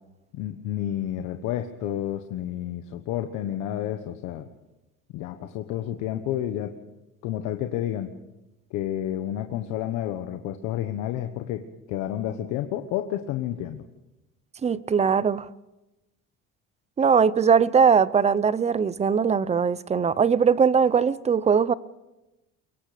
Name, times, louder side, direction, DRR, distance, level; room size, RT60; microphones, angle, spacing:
voice 1, 0.3-4.4 5.1-6.8 7.2-8.1 8.7-13.8, left 11 dB, 90° left, 1.4 m, -30 dB
voice 2, 14.6-15.5 17.0-21.7, right 6 dB, 20° right, 0.6 m, -20 dB
24.5 x 22.5 x 5.2 m
cardioid pair, 135°, 29 cm